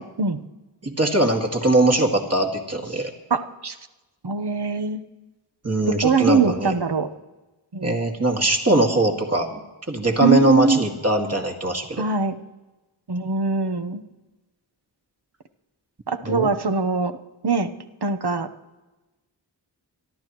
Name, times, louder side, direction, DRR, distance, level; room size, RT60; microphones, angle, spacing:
voice 1, 0.8-3.1 5.6-6.7 7.8-9.6 9.9-12.1 16.2-16.5, right 1 dB, 35° right, 2 dB, 2.2 m, -21 dB
voice 2, 3.3-3.7 4.2-5.0 6.0-7.1 7.7-8.0 10.2-10.8 12.0-12.3 13.1-14.0 16.1-17.2 17.4-17.7 18.0-18.5, right 4 dB, 60° right, 9 dB, 1.1 m, -22 dB
26.0 x 12.0 x 3.1 m, 1.1 s
wide cardioid pair, 55°, 46 cm